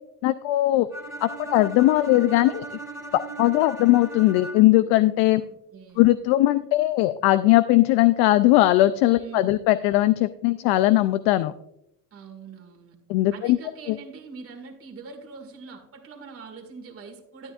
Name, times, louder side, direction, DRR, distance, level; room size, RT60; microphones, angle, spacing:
voice 1, 0.2-0.9 1.2-2.6 3.4-5.4 6.0-11.5 13.1-13.6 13.9-14.0, left 16 dB, 70° left, 12 dB, 0.5 m, -19 dB
Bowed string instrument, 0.9-4.9, right 3 dB, 5° right, 1.9 m, -38 dB
voice 2, 5.4-6.1 9.1-9.5 12.1-13.0 13.3-17.5, right 5 dB, 35° right, 3 dB, 2.0 m, -43 dB
12.5 x 9.5 x 2.5 m, 0.80 s
cardioid pair, 130°, 42 cm